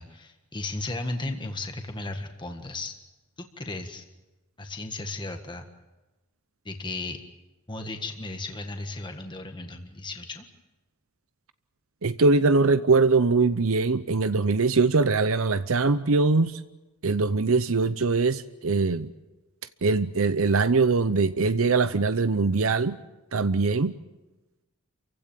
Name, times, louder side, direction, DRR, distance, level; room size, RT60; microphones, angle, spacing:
voice 1, 0.0-2.9 3.4-4.1 4.6-5.7 6.6-7.2 7.7-10.5, left 2 dB, 20° left, 5 dB, 1.6 m, -35 dB
voice 2, 12.0-16.6 17.0-19.1 19.8-23.0 23.3-23.9, right 3 dB, 70° right, 12 dB, 0.7 m, -22 dB
28.5 x 16.0 x 9.1 m, 1.1 s
head